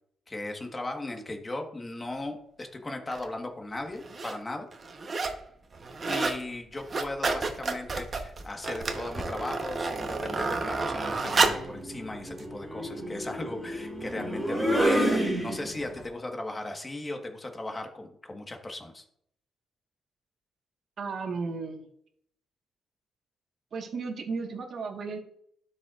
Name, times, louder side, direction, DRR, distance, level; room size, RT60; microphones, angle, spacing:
voice 1, 0.3-4.7 6.1-19.0, left 2 dB, 20° left, 3 dB, 1.5 m, -37 dB
sound 1, 3.1-3.2 3.9-4.4 4.7-5.4 5.7-6.4 6.7-11.7 12.4-12.5, right 3 dB, 35° right, 1.0 m, -30 dB
sound 2, 8.8-9.4 10.7-16.0, equal, ahead, 2.5 m, -30 dB
voice 2, 21.0-21.9 23.7-25.2, right 4 dB, 55° right, 3 dB, 1.5 m, -34 dB
12.0 x 5.3 x 2.5 m, 0.68 s
cardioid pair, 90°, 0 cm